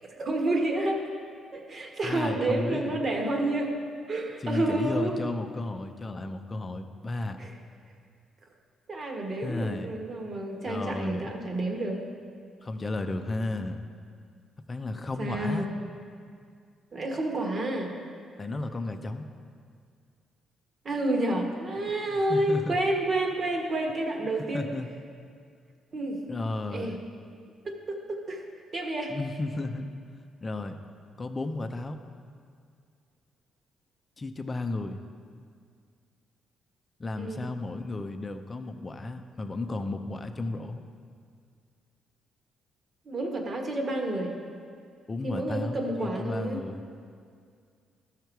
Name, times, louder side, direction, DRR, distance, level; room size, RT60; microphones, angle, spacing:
voice 1, 0.2-1.0 1.5-3.7 4.1-5.2 7.4-7.5 8.9-12.0 15.2-15.7 16.9-17.9 20.8-24.7 25.9-26.2 26.7-26.9 27.6-28.4 28.7-29.1 37.2-37.5 43.0-44.3 45.2-46.6, right 1 dB, 40° right, 1 dB, 1.5 m, -29 dB
voice 2, 2.0-3.0 4.4-7.4 9.4-9.9 10.7-11.2 12.6-13.8 14.7-15.7 18.4-19.3 22.1-22.9 24.5-24.9 26.3-27.0 29.1-29.9 30.4-30.8 31.2-32.0 34.2-35.0 37.0-40.8 45.1-46.8, left 2 dB, 30° left, 6 dB, 0.6 m, -33 dB
13.5 x 5.7 x 4.7 m, 2.2 s
cardioid pair, 90°, 0 cm